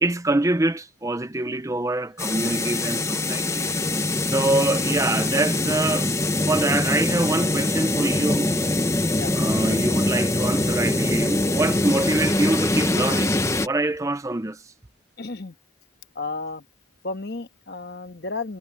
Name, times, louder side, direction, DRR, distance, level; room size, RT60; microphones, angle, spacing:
voice 1, 0.0-3.7 4.3-6.1 6.5-8.6 9.3-13.4 13.6-14.6, right 2 dB, 15° right, 0.5 m, -25 dB
sound 1, 2.2-13.7, left 2 dB, 15° left, 1.0 m, -23 dB
voice 2, 15.2-15.5 16.1-16.6 17.0-18.6, left 3 dB, 55° left, 1.4 m, -32 dB
head